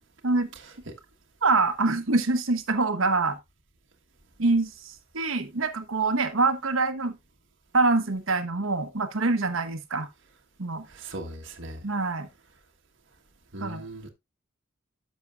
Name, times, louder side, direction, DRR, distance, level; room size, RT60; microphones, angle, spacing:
voice 1, 1.4-3.4 4.4-7.1 7.7-10.1 10.6-10.8 11.8-12.3 13.6-13.8, right 3 dB, 85° right, 1.2 m, -25 dB
voice 2, 10.9-11.8 13.5-14.1, right 1 dB, 65° right, 1.4 m, -38 dB
10.5 x 6.8 x 2.5 m
head